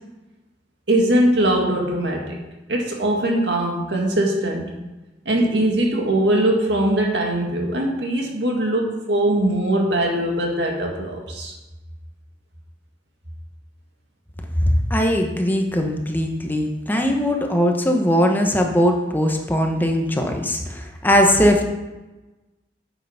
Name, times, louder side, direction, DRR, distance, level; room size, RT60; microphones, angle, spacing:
voice 1, 0.9-2.4 2.7-4.7 5.3-11.5, right 1 dB, 80° right, 0 dB, 2.0 m, -21 dB
voice 2, 14.6-21.6, equal, 10° left, 3 dB, 1.0 m, -20 dB
8.9 x 6.7 x 5.8 m, 1.1 s
head